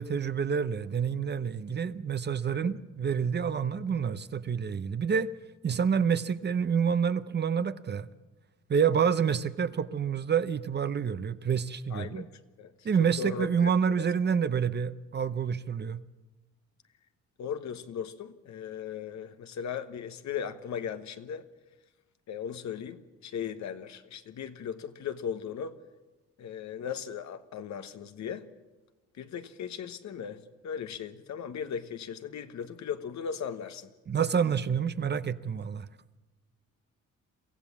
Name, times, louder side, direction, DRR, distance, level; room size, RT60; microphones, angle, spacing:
voice 1, 0.0-5.3 5.6-8.1 8.7-12.3 12.8-16.0 34.1-35.9, right 7 dB, 35° right, 0.7 m, -28 dB
voice 2, 11.9-12.3 12.6-12.9 13.2-14.1 17.4-21.4 22.3-25.7 26.4-28.5 29.1-33.9, left 7 dB, 65° left, 1.3 m, -37 dB
24.0 x 15.0 x 7.2 m
cardioid pair, 90°, 30 cm